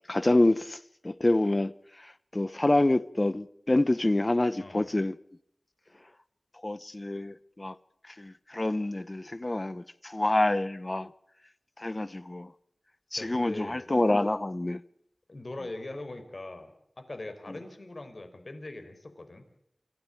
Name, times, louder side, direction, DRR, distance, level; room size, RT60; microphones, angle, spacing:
voice 1, 0.1-0.8 1.0-1.7 2.3-5.1 6.6-7.7 8.2-11.1 11.8-12.5 13.1-14.8, left 1 dB, 35° left, 1.0 m, -27 dB
voice 2, 4.6-4.9 13.2-13.8 15.3-16.7 17.0-19.4, left 2 dB, 60° left, 4.9 m, -41 dB
28.0 x 15.5 x 8.7 m
wide cardioid pair, 40°, 0 cm